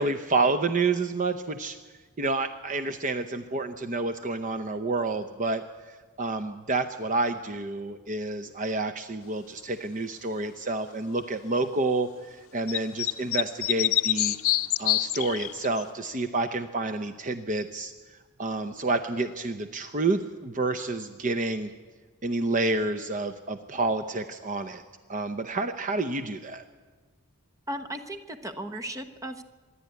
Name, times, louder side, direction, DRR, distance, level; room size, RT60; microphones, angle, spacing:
voice 1, 0.0-1.8 2.2-14.4 14.8-21.7 22.2-24.8 25.1-26.6, right 3 dB, 35° right, 9 dB, 0.7 m, -29 dB
sound 1, 12.7-15.8, left 15 dB, 65° left, 0.7 m, -25 dB
voice 2, 27.7-29.4, right 1 dB, 15° right, 8 dB, 1.1 m, -36 dB
25.5 x 11.0 x 9.5 m, 1.4 s
head